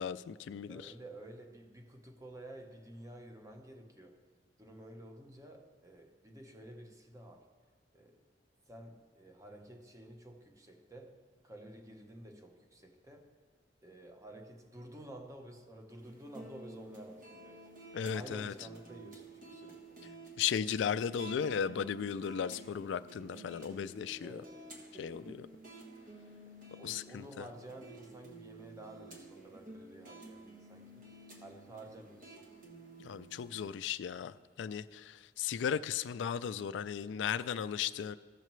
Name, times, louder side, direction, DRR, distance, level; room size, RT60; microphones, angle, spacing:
voice 1, 0.0-0.9 17.9-18.5 20.4-24.4 25.0-25.5 26.8-27.4 33.0-38.2, left 7 dB, 75° left, 15 dB, 0.3 m, -36 dB
voice 2, 0.7-4.2 4.6-7.5 7.9-8.2 8.7-11.2 11.4-13.3 13.8-17.7 18.1-20.0 24.2-24.6 26.8-31.0 31.4-32.4, right 1 dB, 20° right, 4 dB, 0.8 m, -51 dB
sound 1, 16.0-33.8, right 1 dB, 50° right, 1.5 m, -52 dB
15.0 x 6.6 x 3.1 m, 1.5 s
head